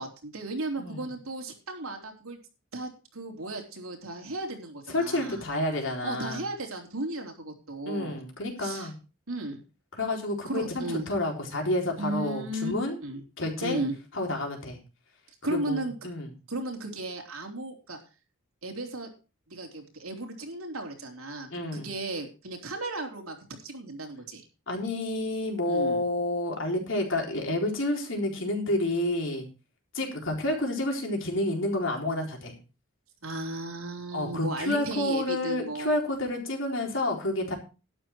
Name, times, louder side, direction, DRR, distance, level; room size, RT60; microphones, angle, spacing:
voice 1, 0.0-2.4 2.7-5.4 6.0-8.2 8.6-8.9 9.3-9.6 10.4-11.1 12.0-12.7 13.0-13.2 13.6-13.9 15.4-15.9 16.5-18.0 18.6-19.1 19.5-23.4 23.6-24.5 25.6-26.0 33.2-36.0, right 2 dB, 80° right, 1 dB, 3.5 m, -35 dB
voice 2, 4.9-6.4 7.9-8.9 9.9-13.0 13.4-13.8 14.1-14.8 15.5-16.3 21.5-21.9 24.7-29.5 29.9-32.5 34.1-37.6, left 1 dB, 60° left, 1 dB, 4.1 m, -29 dB
12.0 x 10.5 x 4.5 m, 0.32 s
head